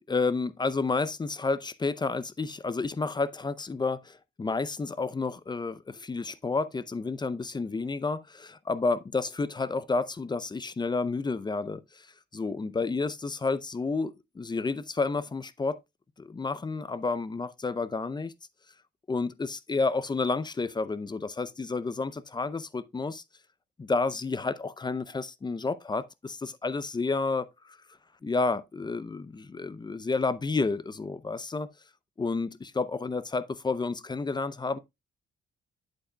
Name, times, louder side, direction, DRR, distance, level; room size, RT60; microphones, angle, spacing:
voice 1, 0.1-12.1 12.3-15.8 16.2-18.3 19.1-23.2 23.8-27.8 28.2-31.7 32.2-34.8, left 3 dB, 20° left, 0.6 m, -30 dB
8.2 x 8.1 x 2.2 m
cardioid pair, 90°, 20 cm